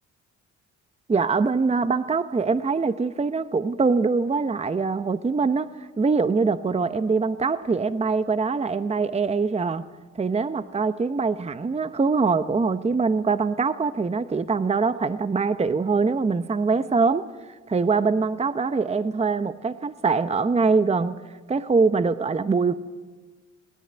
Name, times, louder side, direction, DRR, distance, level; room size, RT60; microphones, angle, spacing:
voice 1, 1.1-9.9 10.2-17.3 17.7-21.2 21.5-22.7, right 4 dB, 20° right, 12 dB, 0.8 m, -23 dB
20.0 x 19.5 x 9.5 m, 1.3 s
cardioid pair, 90°, 30 cm